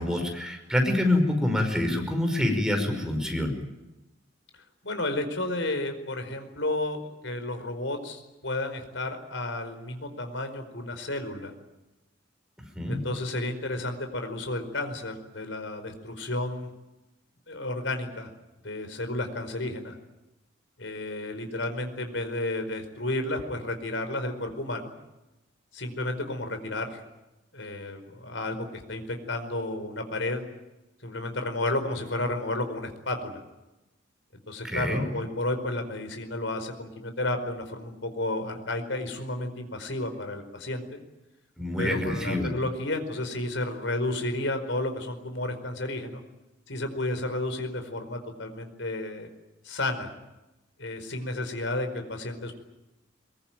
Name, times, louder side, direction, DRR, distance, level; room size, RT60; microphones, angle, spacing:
voice 1, 0.0-3.5 12.8-13.0 34.6-35.0 41.6-42.5, left 1 dB, 5° right, 4 dB, 5.4 m, -26 dB
voice 2, 4.8-11.5 12.9-16.7 17.5-18.3 18.6-19.9 20.8-24.9 25.7-27.0 27.5-30.4 31.0-33.4 34.5-41.0 41.8-46.2 46.7-49.3 49.6-50.1 50.8-52.5, left 2 dB, 75° left, 7 dB, 4.9 m, -32 dB
23.0 x 22.5 x 9.2 m, 1.0 s
head